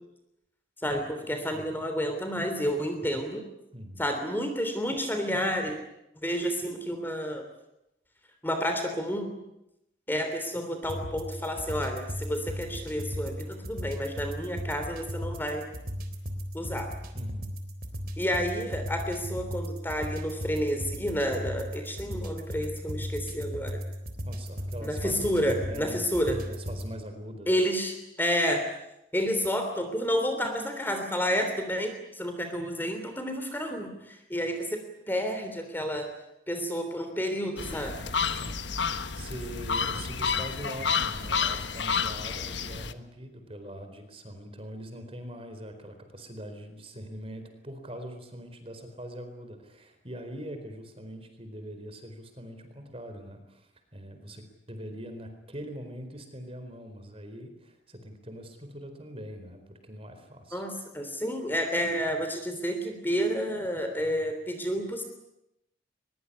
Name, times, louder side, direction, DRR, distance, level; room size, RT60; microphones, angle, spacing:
voice 1, 0.8-3.4 4.0-5.7 6.2-7.4 8.4-9.3 10.1-15.7 16.5-16.9 18.2-23.8 24.8-26.4 27.5-28.7 29.1-36.1 36.5-38.0 60.5-65.0, equal, 10° left, 6 dB, 3.3 m, -30 dB
voice 2, 3.7-4.0 17.1-17.5 24.2-25.4 25.7-26.1 26.5-27.5 38.3-38.6 39.1-60.6, equal, 30° right, 7 dB, 4.3 m, -42 dB
sound 1, 10.8-26.9, equal, 55° right, 3.7 m, -36 dB
sound 2, 37.6-42.9, left 5 dB, 75° left, 1.4 m, -30 dB
22.5 x 22.0 x 9.9 m, 0.86 s
head